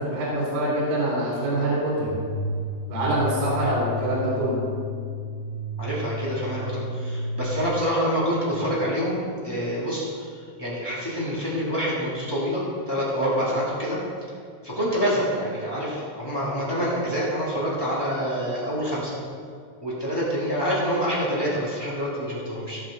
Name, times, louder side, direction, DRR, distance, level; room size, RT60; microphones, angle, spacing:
voice 1, 0.0-2.1 2.9-4.6, right 1 dB, 70° right, -6 dB, 4.3 m, -25 dB
sound 1, 2.0-7.7, left 2 dB, 45° right, 3.6 m, -32 dB
voice 2, 5.8-14.0 14.6-19.2 19.8-22.8, equal, 10° left, -8 dB, 1.1 m, -27 dB
19.0 x 6.5 x 3.7 m, 2.2 s
omnidirectional pair, 5.0 m